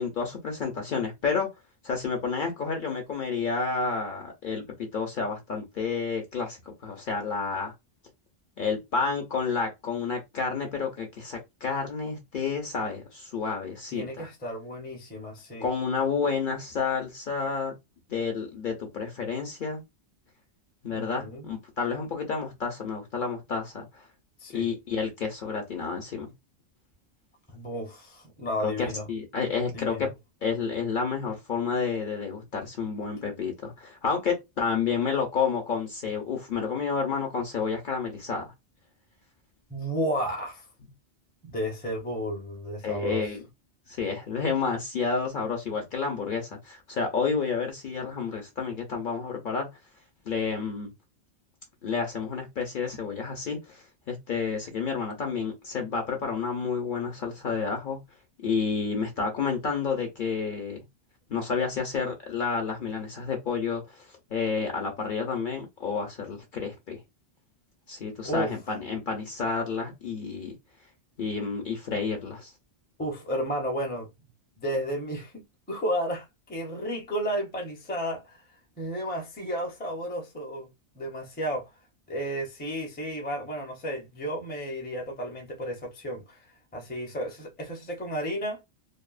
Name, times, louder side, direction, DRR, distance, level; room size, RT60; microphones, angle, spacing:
voice 1, 0.0-1.5 1.8-7.7 8.6-14.3 15.6-17.7 18.1-19.8 20.8-24.0 24.5-26.3 28.6-30.1 30.4-38.5 42.8-43.4 43.9-49.7 50.3-50.9 51.8-58.0 58.4-60.8 61.3-67.0 67.9-70.5 71.2-72.5, left 5 dB, 55° left, 0.7 m, -30 dB
voice 2, 13.9-15.7 20.9-21.5 24.4-24.7 27.5-29.1 29.7-30.1 39.7-40.7 41.4-43.2 68.2-68.5 73.0-74.1 74.6-78.4 78.8-80.7 80.9-81.7 82.1-86.5 86.7-88.6, equal, 10° left, 0.5 m, -32 dB
2.7 x 2.3 x 2.3 m
omnidirectional pair, 1.2 m